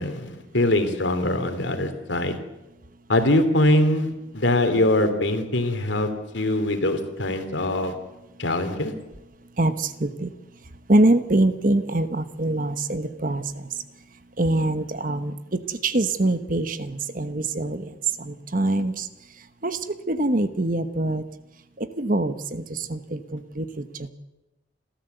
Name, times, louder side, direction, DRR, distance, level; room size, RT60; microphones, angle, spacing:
voice 1, 0.0-2.4 3.1-6.1 6.3-7.9 8.4-8.9, left 1 dB, 80° left, 8 dB, 2.8 m, -22 dB
voice 2, 9.6-10.3 10.9-13.7 14.4-19.1 19.6-21.2 21.8-24.1, right 2 dB, 45° right, 11 dB, 1.1 m, -24 dB
29.5 x 13.5 x 8.0 m, 1.0 s
head